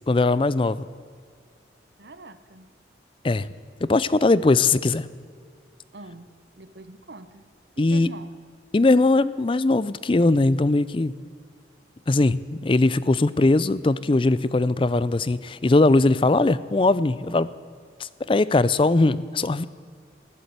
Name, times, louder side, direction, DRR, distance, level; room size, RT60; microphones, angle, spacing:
voice 1, 0.1-0.9 3.2-3.5 3.8-5.1 7.8-8.1 8.7-11.1 12.1-17.5 18.0-19.7, left 2 dB, 30° left, 17 dB, 0.4 m, -20 dB
voice 2, 2.0-2.7 5.9-7.5 7.8-8.3, right 2 dB, 70° right, 12 dB, 1.0 m, -44 dB
14.5 x 11.5 x 8.1 m, 2.2 s
head